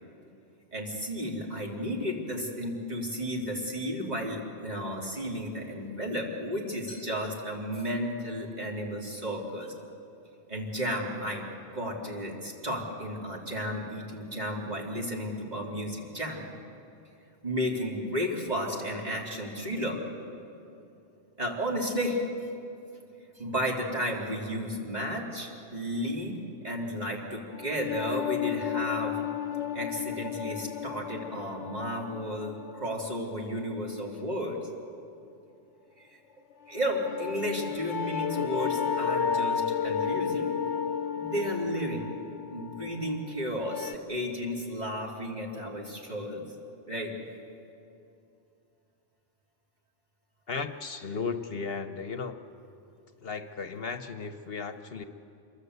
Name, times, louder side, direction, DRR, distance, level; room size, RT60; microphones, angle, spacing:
voice 1, 0.7-9.7 10.5-11.5 11.7-16.4 17.4-20.0 21.4-22.2 23.4-26.4 26.6-29.2 29.7-34.6 36.0-36.2 36.7-40.5 41.2-42.1 42.5-46.4 46.9-47.1, equal, 40° right, -2 dB, 3.6 m, -33 dB
sound 1, 27.5-33.3 36.7-44.0, left 7 dB, 85° left, 1.1 m, -33 dB
voice 2, 50.5-52.4 53.2-55.0, left 5 dB, 60° left, 8 dB, 1.2 m, -35 dB
27.0 x 23.0 x 8.1 m, 2.7 s
omnidirectional pair, 1.1 m